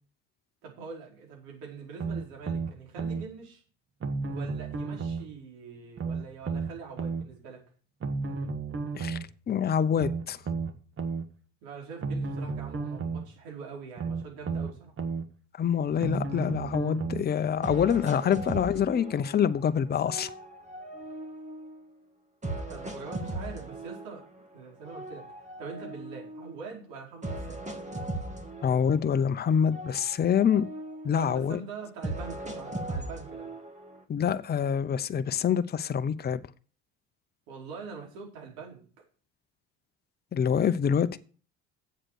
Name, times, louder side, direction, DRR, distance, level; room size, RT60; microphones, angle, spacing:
voice 1, 0.6-3.6 4.3-7.6 11.6-14.9 22.7-24.2 24.5-27.6 31.2-33.5 37.5-39.0, right 5 dB, 70° right, 4.6 m, -44 dB
sound 1, 2.0-3.2 4.0-5.3 6.0-7.2 8.0-9.3 10.0-11.2 12.0-13.3 14.0-15.2 16.0-17.3 18.0-18.1, right 4 dB, 35° right, 1.7 m, -32 dB
voice 2, 9.5-10.4 15.6-20.3 28.6-30.6 31.0-31.6 34.1-36.4 40.3-41.2, left 8 dB, 25° left, 0.8 m, -26 dB
sound 2, 16.9-17.0 17.6-19.6 20.0-21.9 22.4-24.4 24.8-26.6 27.2-29.4 29.6-31.4 32.0-34.0, right 1 dB, 20° right, 2.1 m, -38 dB
8.0 x 7.6 x 6.4 m
hypercardioid pair, 80°, 37 cm